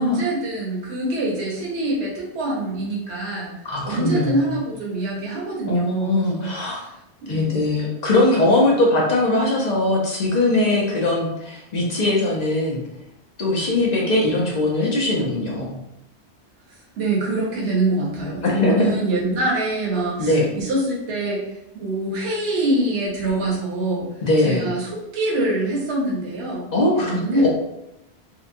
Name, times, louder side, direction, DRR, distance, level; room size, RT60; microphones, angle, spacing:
voice 1, 0.0-3.5 3.8-6.9 7.2-7.5 17.0-24.1 24.4-27.5, right 2 dB, 75° right, -4 dB, 1.0 m, -24 dB
voice 2, 3.6-4.6 5.7-6.8 7.3-12.8 13.4-15.8 18.4-18.9 20.2-20.4 24.2-24.7 26.7-27.5, left 2 dB, 50° left, -3 dB, 0.6 m, -20 dB
2.7 x 2.1 x 2.5 m, 0.86 s
omnidirectional pair, 1.1 m